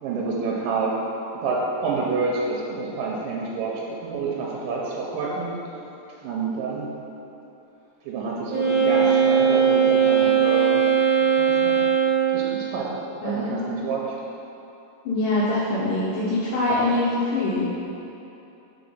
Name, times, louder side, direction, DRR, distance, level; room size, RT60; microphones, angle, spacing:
voice 1, 0.0-1.0 1.4-5.6 6.2-6.9 8.0-10.9 11.4-11.8 12.3-14.2, right 4 dB, 85° right, -4 dB, 2.3 m, -28 dB
Wind instrument woodwind instrument, 8.5-12.5, right 7 dB, 40° right, 1.3 m, -19 dB
voice 2, 13.2-13.8 15.1-17.6, left 2 dB, 80° left, -9 dB, 2.4 m, -24 dB
5.1 x 4.5 x 5.4 m, 2.9 s
omnidirectional pair, 3.9 m